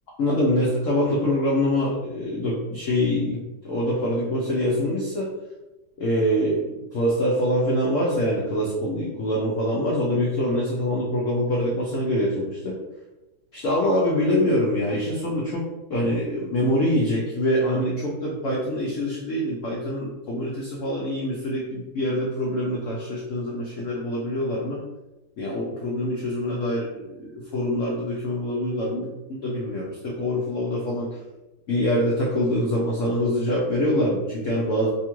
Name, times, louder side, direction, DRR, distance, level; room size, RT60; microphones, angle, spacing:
voice 1, 0.2-5.3 6.0-12.7 13.5-24.8 25.4-31.1 31.7-34.9, equal, 70° left, -4 dB, 0.7 m, -25 dB
2.8 x 2.3 x 2.9 m, 1.0 s
omnidirectional pair, 1.8 m